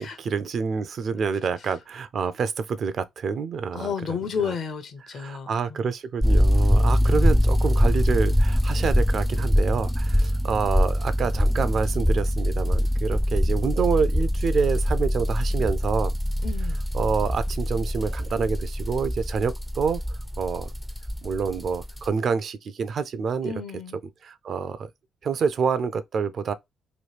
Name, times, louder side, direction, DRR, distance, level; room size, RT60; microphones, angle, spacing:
voice 1, 0.0-4.2 4.4-4.5 5.1-16.2 16.9-20.0 20.4-20.7 21.2-23.5 24.2-24.9 25.2-26.5, right 5 dB, 55° right, 0.4 m, -27 dB
voice 2, 3.7-5.9 7.0-7.4 16.4-16.8 23.4-24.0, left 6 dB, 60° left, 0.7 m, -32 dB
sound 1, 6.2-22.1, equal, 5° left, 0.4 m, -23 dB
3.1 x 2.3 x 3.2 m
cardioid pair, 90°, 0 cm